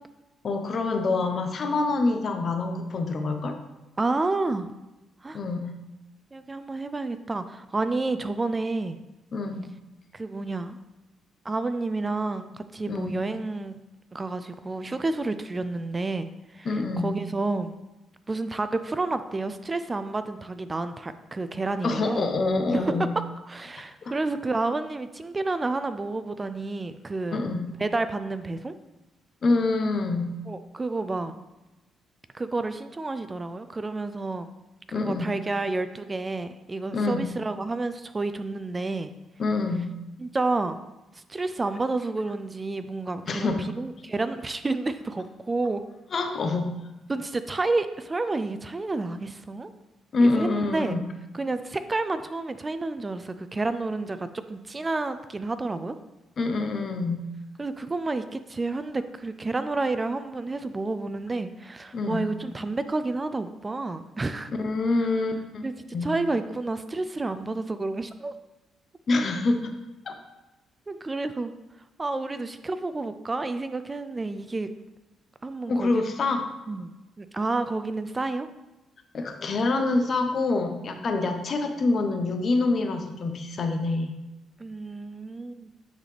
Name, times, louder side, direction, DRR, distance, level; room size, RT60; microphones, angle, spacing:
voice 1, 0.4-3.6 5.3-5.7 9.3-9.7 12.9-13.1 16.6-17.1 21.8-23.1 24.0-24.1 27.3-27.7 29.4-30.3 34.9-35.3 36.9-37.3 39.4-39.9 43.2-43.7 46.1-46.7 50.1-51.0 56.4-57.2 61.9-62.3 64.5-65.7 65.9-66.1 69.1-69.7 70.1-70.2 75.7-76.4 79.1-84.1, left 3 dB, 50° left, 6 dB, 0.8 m, -26 dB
voice 2, 4.0-4.7 5.2-5.4 6.3-9.0 10.1-10.8 11.4-13.8 14.1-16.7 17.0-17.7 18.3-22.3 22.7-22.9 23.5-27.4 27.7-28.7 30.5-31.4 32.3-34.5 34.9-39.1 40.2-40.8 41.1-45.8 47.1-49.7 50.2-51.0 51.3-56.0 57.6-64.5 65.6-65.7 66.0-68.3 70.9-71.5 72.0-74.7 75.4-75.9 76.7-78.5 81.1-81.3 84.6-85.7, right 3 dB, 25° right, 11 dB, 0.3 m, -30 dB
9.4 x 4.0 x 3.3 m, 1.0 s
cardioid pair, 90°, 0 cm